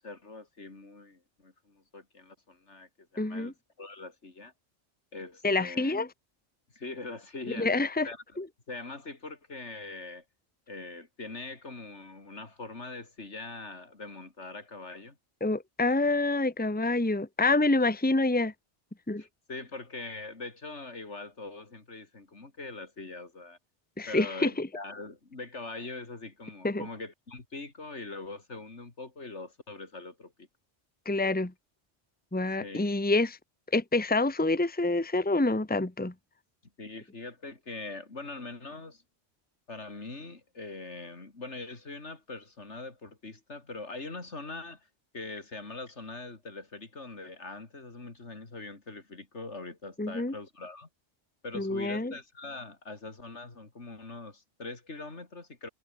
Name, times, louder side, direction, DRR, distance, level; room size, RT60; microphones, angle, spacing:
voice 1, 0.0-4.5 5.1-6.0 6.7-7.7 8.0-10.2 10.7-15.2 19.2-23.6 24.1-30.5 32.6-32.8 36.8-39.0 39.7-44.9 45.1-50.9 51.4-55.7, left 3 dB, 75° left, 3.6 m, -42 dB
voice 2, 3.2-3.5 5.4-6.1 7.6-8.1 8.4-8.5 15.4-18.5 19.1-19.2 24.0-24.7 26.6-26.9 31.0-31.5 32.3-33.4 33.7-36.1 50.0-50.3 51.5-52.1, left 2 dB, 10° left, 1.3 m, -27 dB
omnidirectional pair, 1.2 m